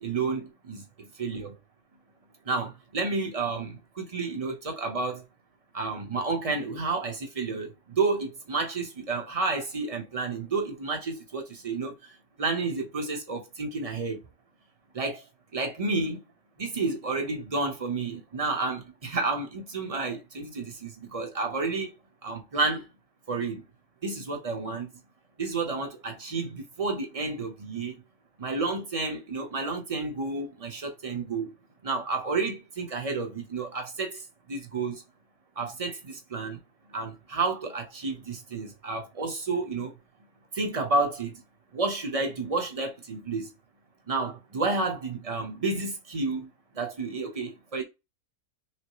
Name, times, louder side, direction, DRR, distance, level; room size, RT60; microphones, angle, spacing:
voice 1, 0.0-0.8 1.2-1.5 2.5-5.2 5.7-11.9 12.4-14.2 14.9-15.2 15.5-16.2 16.6-21.9 22.2-22.9 23.3-23.6 24.0-24.9 25.4-28.0 28.4-31.5 31.8-34.2 34.5-35.0 35.6-36.6 36.9-39.9 40.5-41.4 41.7-43.5 44.1-46.5 46.8-47.8, right 3 dB, 30° right, 0.8 m, -30 dB
6.1 x 2.1 x 3.1 m
omnidirectional pair, 1.5 m